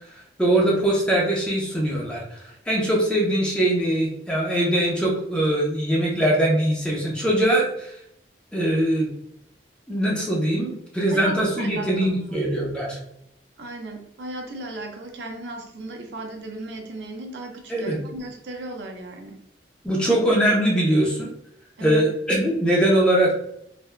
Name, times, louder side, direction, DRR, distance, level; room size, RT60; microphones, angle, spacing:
voice 1, 0.4-7.9 8.5-9.1 9.9-13.0 17.7-18.0 19.8-21.3 21.8-23.4, right 1 dB, 5° left, -3 dB, 0.7 m, -22 dB
voice 2, 11.1-12.4 13.6-19.4 21.8-22.1, right 2 dB, 70° right, 2 dB, 0.6 m, -36 dB
3.3 x 2.4 x 2.2 m, 0.74 s
head